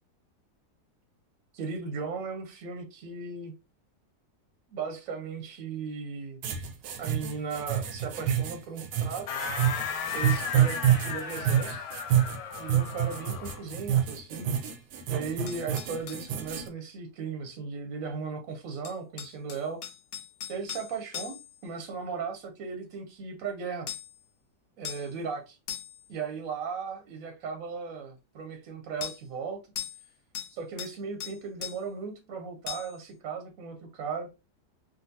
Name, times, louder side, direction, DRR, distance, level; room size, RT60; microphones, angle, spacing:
voice 1, 1.5-3.5 4.7-6.4 7.0-9.3 10.1-11.9 12.6-14.5 15.1-19.8 20.5-21.4 21.6-23.9 24.8-25.6 26.1-29.6 30.5-34.3, right 5 dB, 65° right, 1.0 m, -37 dB
sound 1, 6.4-16.7, right 10 dB, 80° right, 1.2 m, -27 dB
sound 2, 9.3-13.7, left 6 dB, 85° left, 1.3 m, -35 dB
sound 3, 15.5-16.3 18.8-21.6 23.9-24.2 24.8-25.1 25.7-26.1 29.0-29.2 29.8-30.1 30.3-31.0 31.2-31.8 32.7-33.0, left 9 dB, 70° left, 1.1 m, -39 dB
3.8 x 2.3 x 2.6 m
omnidirectional pair, 1.8 m